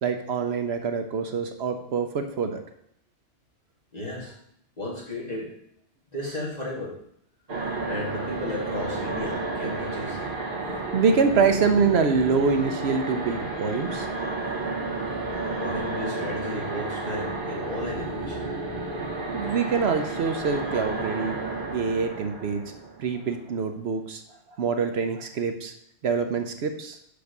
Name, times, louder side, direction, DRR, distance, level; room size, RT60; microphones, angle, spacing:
voice 1, 0.0-2.6 10.9-14.1 19.3-21.4 21.7-22.6 23.0-24.2 24.5-25.7 26.0-27.0, right 5 dB, 70° right, 7 dB, 1.0 m, -25 dB
voice 2, 3.9-4.4 4.8-5.5 6.1-7.0 7.9-10.3 15.4-18.5, left 1 dB, 35° left, -4 dB, 2.4 m, -34 dB
sound 1, 7.5-23.4, right 3 dB, 50° right, 1.7 m, -32 dB
5.9 x 5.2 x 6.6 m, 0.71 s
omnidirectional pair, 1.2 m